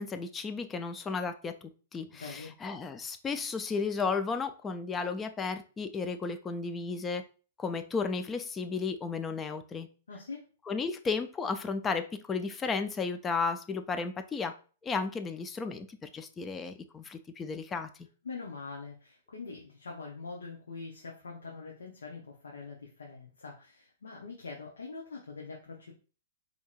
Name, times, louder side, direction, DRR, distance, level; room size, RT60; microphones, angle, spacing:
voice 1, 0.0-7.2 7.6-9.9 10.7-14.5 14.8-18.1, left 4 dB, 20° left, 9 dB, 0.4 m, -34 dB
voice 2, 2.1-2.5 10.1-10.4 18.2-25.9, left 4 dB, 85° left, -1 dB, 0.8 m, -43 dB
4.3 x 2.8 x 2.4 m, 0.38 s
hypercardioid pair, 120°, 0 cm